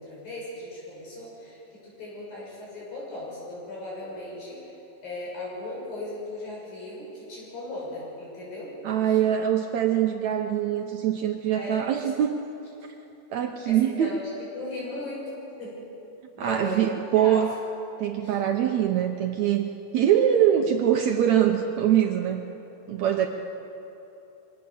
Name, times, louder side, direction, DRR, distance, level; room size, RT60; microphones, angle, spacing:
voice 1, 0.0-4.8 5.0-8.7 9.0-9.2 11.5-12.1 13.6-15.8 16.4-16.8 17.2-17.4 18.2-18.4 20.3-20.6 23.2-23.3, left 2 dB, 75° left, -5 dB, 8.5 m, -37 dB
voice 2, 8.8-12.3 13.3-14.1 16.4-17.5 18.0-22.4 22.9-23.3, right 10 dB, 75° right, 4 dB, 1.8 m, -23 dB
24.0 x 18.5 x 7.1 m, 3.0 s
omnidirectional pair, 4.1 m